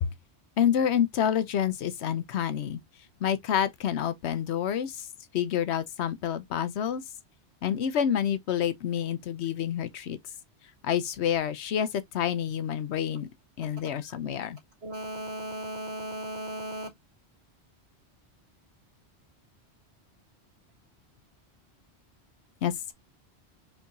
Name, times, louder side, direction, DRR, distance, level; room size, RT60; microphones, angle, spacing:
voice 1, 0.6-2.8 3.2-5.1 5.3-7.0 7.6-10.2 10.8-13.3 13.6-14.6 22.6-22.9, left 9 dB, 75° left, 0.9 m, -28 dB
voice 2, 14.8-16.9, right 1 dB, 65° right, 2.0 m, -36 dB
4.5 x 3.4 x 2.6 m
omnidirectional pair, 1.1 m